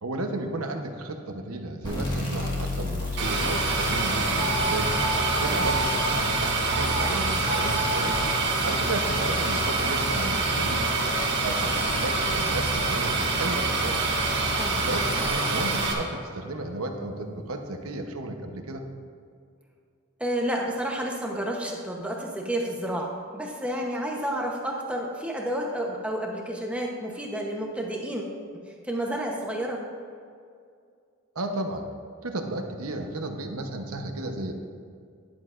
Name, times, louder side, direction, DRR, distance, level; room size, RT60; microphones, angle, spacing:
voice 1, 0.0-4.9 5.4-8.2 8.6-10.9 11.4-14.0 14.8-18.9 31.3-31.9 32.2-34.5, right 2 dB, 90° right, 4 dB, 1.0 m, -33 dB
sound 1, 1.8-9.1, left 2 dB, 20° left, 1.7 m, -35 dB
sound 2, 3.2-15.9, right 3 dB, 50° right, 1.6 m, -26 dB
sound 3, 4.4-6.2 6.6-7.0 7.4-8.2, right 1 dB, 55° left, 1.5 m, -31 dB
voice 2, 5.3-5.7 14.5-14.8 20.2-29.8, right 1 dB, 5° right, -1 dB, 0.9 m, -31 dB
12.5 x 10.5 x 2.5 m, 2.2 s
head